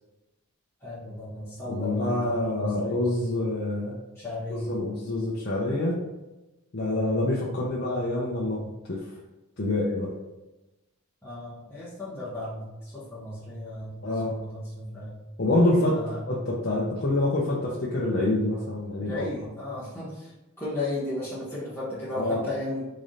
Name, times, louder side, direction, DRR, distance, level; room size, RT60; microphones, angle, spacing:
voice 1, 0.8-3.0 4.2-4.8 11.2-15.2 15.9-16.2 19.0-22.9, left 2 dB, 10° left, -11 dB, 1.0 m, -35 dB
voice 2, 1.7-4.0 4.5-6.0 6.7-9.0 9.6-10.1 14.0-14.3 15.4-19.3 22.1-22.4, left 1 dB, 50° left, -5 dB, 0.7 m, -26 dB
3.8 x 3.4 x 4.1 m, 1.0 s
head